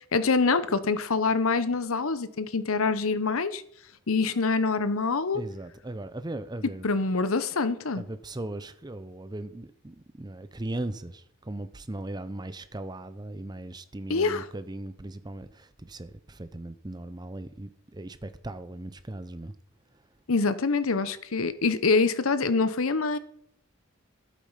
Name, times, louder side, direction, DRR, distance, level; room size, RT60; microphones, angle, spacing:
voice 1, 0.1-3.6 4.1-5.4 6.8-8.0 14.1-14.4 20.3-23.2, left 4 dB, 75° left, 0.9 m, -25 dB
voice 2, 5.3-6.9 8.0-19.5, right 1 dB, 20° right, 0.6 m, -38 dB
12.0 x 8.5 x 5.6 m
head